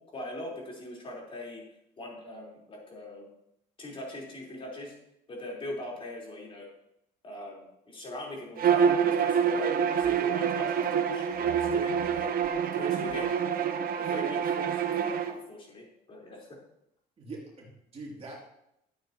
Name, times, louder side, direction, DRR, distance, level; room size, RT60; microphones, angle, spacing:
voice 1, 0.1-1.6 2.0-3.3 3.8-4.9 5.3-6.7 7.2-13.3 13.9-16.6, left 1 dB, 30° left, -3 dB, 4.0 m, -41 dB
Bowed string instrument, 8.6-15.3, right 7 dB, 60° right, 0.9 m, -27 dB
voice 2, 17.2-18.4, right 2 dB, 35° right, -3 dB, 2.8 m, -43 dB
12.5 x 8.8 x 3.0 m, 0.80 s
cardioid pair, 110°, 17 cm